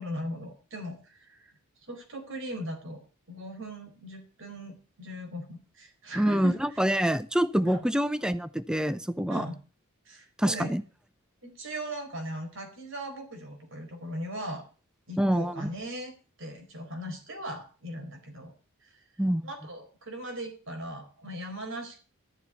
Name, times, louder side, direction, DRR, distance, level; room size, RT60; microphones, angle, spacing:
voice 1, 0.0-1.5 1.9-3.0 3.3-6.9 7.6-7.8 9.3-9.6 10.0-10.7 11.4-14.6 15.1-18.5 18.8-19.0 19.4-22.0, right 1 dB, 60° right, 4 dB, 4.5 m, -39 dB
voice 2, 6.2-9.5 10.4-10.8 15.2-15.7 19.2-19.5, equal, 5° right, 14 dB, 0.5 m, -26 dB
13.0 x 7.2 x 8.2 m, 0.37 s
head